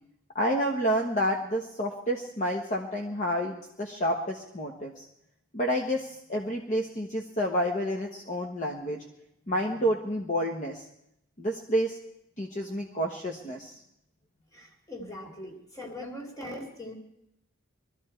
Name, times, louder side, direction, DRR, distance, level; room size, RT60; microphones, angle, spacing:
voice 1, 0.3-5.0 5.5-9.0 9.5-10.8 11.4-12.0 12.4-13.8, equal, 35° left, 2 dB, 1.2 m, -29 dB
voice 2, 14.5-16.9, left 1 dB, 15° left, 1 dB, 2.5 m, -41 dB
21.5 x 13.5 x 4.5 m, 0.80 s
head